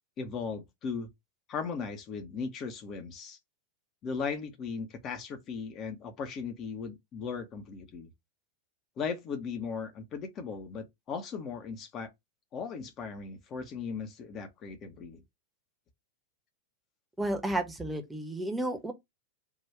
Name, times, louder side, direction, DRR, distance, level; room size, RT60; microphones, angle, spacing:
voice 1, 0.2-1.1 1.5-3.4 4.0-8.1 9.0-12.1 12.5-15.2, left 5 dB, 30° left, 0.9 m, -37 dB
voice 2, 17.2-18.9, right 1 dB, 10° right, 1.0 m, -32 dB
3.7 x 2.5 x 4.5 m
figure-of-eight pair, 90°, 0 cm